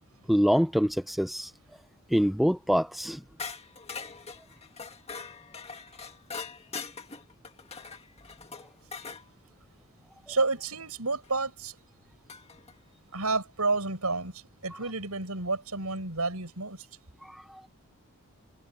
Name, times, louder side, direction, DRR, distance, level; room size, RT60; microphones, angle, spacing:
voice 1, 0.3-1.5 2.1-3.2 17.2-17.7, equal, ahead, 0.4 m, -25 dB
sound 1, 3.4-9.2 11.2-11.3 12.3-12.7, left 5 dB, 30° left, 2.0 m, -42 dB
voice 2, 10.3-11.8 13.1-16.8, right 3 dB, 85° right, 6.7 m, -30 dB
head